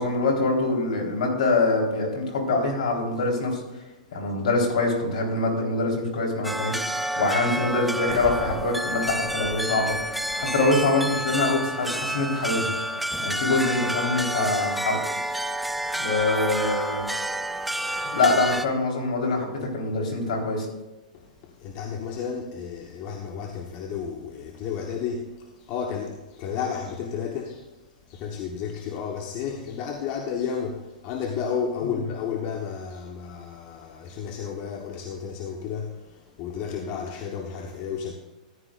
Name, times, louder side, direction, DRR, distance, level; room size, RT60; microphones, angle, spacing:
voice 1, 0.0-3.6 4.1-10.0 10.4-12.7 13.2-15.0 16.0-17.0 18.0-20.7, left 2 dB, 75° left, 3.9 m, -24 dB
sound 1, 6.4-18.7, right 1 dB, ahead, 0.4 m, -29 dB
voice 2, 21.1-27.6 28.1-38.1, left 7 dB, 40° left, 1.1 m, -32 dB
14.0 x 11.0 x 2.5 m
hypercardioid pair, 135°, 4 cm